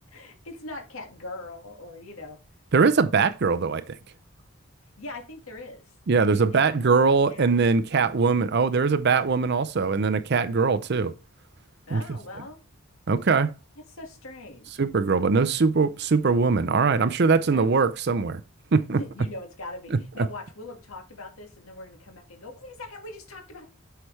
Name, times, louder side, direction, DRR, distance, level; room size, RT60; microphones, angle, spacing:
voice 1, 0.1-2.4 5.0-5.8 6.2-7.6 11.9-12.6 13.9-14.8 17.4-17.8 18.9-23.7, left 2 dB, 75° left, 1.9 m, -41 dB
voice 2, 2.7-3.9 6.1-11.1 11.9-12.0 13.1-13.5 14.8-18.4 18.7-19.0 20.2-20.3, right 4 dB, 50° right, 0.5 m, -21 dB
8.0 x 5.8 x 3.2 m
head